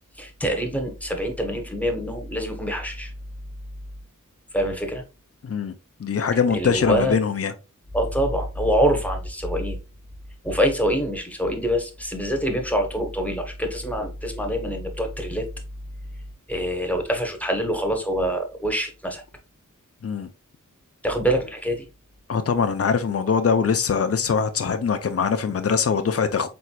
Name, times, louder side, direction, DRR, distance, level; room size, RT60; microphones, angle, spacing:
voice 1, 0.2-3.1 4.5-5.0 6.5-7.2 7.9-9.8 10.4-15.5 16.5-19.2 21.0-21.8, equal, 5° left, 1.1 m, -25 dB
voice 2, 5.4-5.7 6.0-7.5 20.0-20.3 22.3-26.5, left 6 dB, 45° left, 0.6 m, -22 dB
4.5 x 3.8 x 2.3 m
wide cardioid pair, 70°, 33 cm